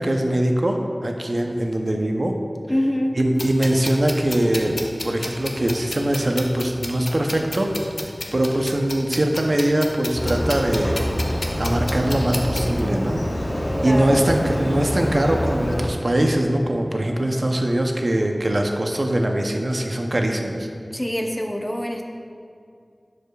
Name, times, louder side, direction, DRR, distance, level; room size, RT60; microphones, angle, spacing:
voice 1, 0.0-2.3 3.2-4.7 5.0-7.7 8.3-11.0 11.6-13.2 13.8-20.7, right 1 dB, 55° right, 3 dB, 0.6 m, -22 dB
voice 2, 2.7-3.2 13.8-14.2 20.9-22.1, equal, 15° left, 2 dB, 0.6 m, -25 dB
sound 1, 3.4-12.8, left 2 dB, 90° left, 0.6 m, -33 dB
Motorcycle, 10.1-15.9, equal, 55° left, 0.9 m, -25 dB
11.0 x 4.9 x 2.3 m, 2.4 s
wide cardioid pair, 45°, 0 cm